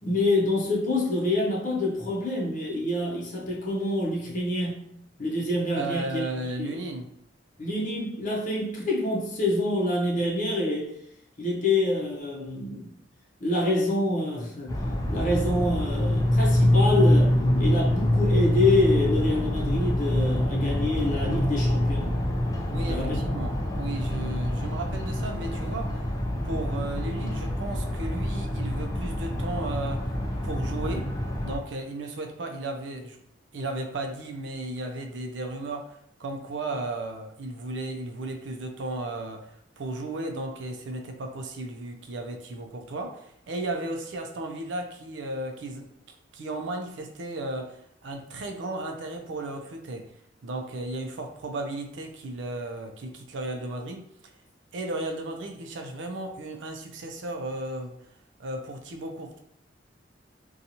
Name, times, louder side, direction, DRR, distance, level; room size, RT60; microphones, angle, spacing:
voice 1, 0.0-4.8 5.2-6.3 6.6-6.8 7.6-10.9 11.4-13.0 13.4-14.8 15.1-22.1 22.9-23.2, left 2 dB, 45° left, 0.7 m, -26 dB
voice 2, 5.8-7.1 22.7-25.9 26.4-30.1 30.4-31.1 31.4-33.2 33.5-39.5 39.8-45.9 46.3-50.1 50.4-54.0 54.7-58.0 58.4-59.4, right 2 dB, 85° right, 0.4 m, -35 dB
sound 1, 14.7-31.6, left 1 dB, 20° left, 0.3 m, -25 dB
2.8 x 2.3 x 2.6 m
head